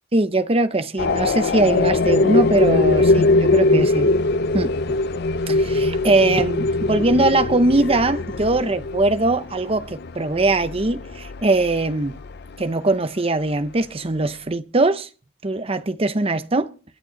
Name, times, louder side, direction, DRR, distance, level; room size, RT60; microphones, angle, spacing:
voice 1, 0.1-4.1 4.5-4.7 5.5-12.2 12.6-15.1 15.4-16.7, right 2 dB, 30° right, 0.8 m, -21 dB
sound 1, 1.0-12.6, left 2 dB, 55° left, 0.6 m, -21 dB
22.5 x 9.0 x 4.0 m
head